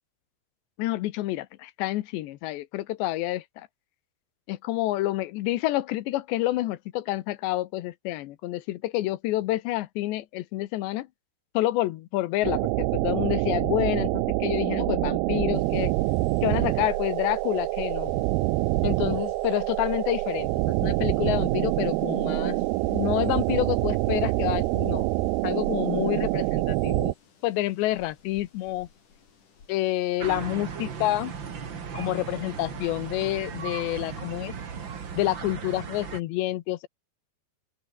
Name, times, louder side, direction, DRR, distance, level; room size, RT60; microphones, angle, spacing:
voice 1, 0.8-3.7 4.5-11.1 11.5-15.9 16.4-18.1 18.8-22.6 22.9-25.1 25.4-27.1 27.4-28.9 29.7-31.3 31.9-34.5 35.2-36.9, left 16 dB, 80° left, 3.2 m, -28 dB
sound 1, 12.4-27.1, right 21 dB, 85° right, 2.2 m, -26 dB
sound 2, 15.5-35.3, left 6 dB, 45° left, 5.3 m, -53 dB
sound 3, 30.2-36.2, right 6 dB, 45° right, 1.6 m, -37 dB
open air
omnidirectional pair, 5.2 m